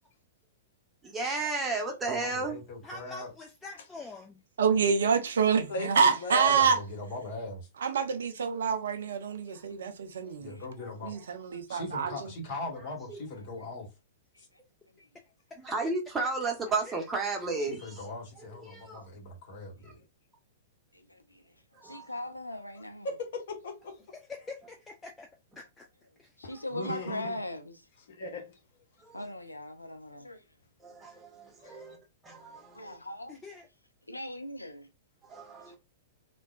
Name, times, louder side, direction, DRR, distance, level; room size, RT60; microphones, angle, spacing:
voice 1, 1.1-2.6 13.1-13.2 15.6-18.1 18.4-19.0 21.8-22.0 26.5-26.6 29.0-29.2 30.8-32.0 32.2-33.0 35.2-35.8, right 3 dB, 15° right, 1.0 m, -33 dB
voice 2, 2.1-3.3 6.5-7.7 10.4-11.1 11.7-13.9 17.7-20.0 26.7-27.4, left 2 dB, 40° left, 1.4 m, -40 dB
voice 3, 2.8-4.4 15.5-15.6 16.8-17.0 24.1-25.3 25.6-25.9 26.2-26.3 33.3-33.7, left 3 dB, 15° left, 0.4 m, -45 dB
voice 4, 4.6-6.8 7.8-10.6 11.0-12.3, right 6 dB, 65° right, 0.6 m, -27 dB
voice 5, 5.7-6.7 23.0-24.0 26.4-26.5 26.9-27.1 28.1-28.6 31.6-31.8, left 3 dB, 55° left, 0.7 m, -37 dB
voice 6, 20.9-21.4 21.8-23.1 26.4-27.8 29.1-30.4 32.7-33.4 34.1-34.9, left 1 dB, 85° left, 0.4 m, -39 dB
3.4 x 2.2 x 2.4 m
figure-of-eight pair, 105°, 0 cm